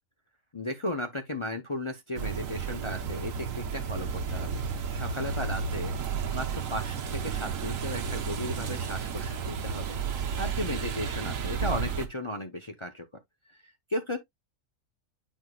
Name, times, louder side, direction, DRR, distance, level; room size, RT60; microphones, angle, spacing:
voice 1, 0.5-4.5 4.9-5.9 6.3-13.2 13.9-14.2, left 1 dB, 30° left, 0.7 m, -35 dB
sound 1, 2.2-12.1, right 6 dB, 75° right, 1.3 m, -32 dB
8.8 x 4.7 x 2.3 m
omnidirectional pair, 1.4 m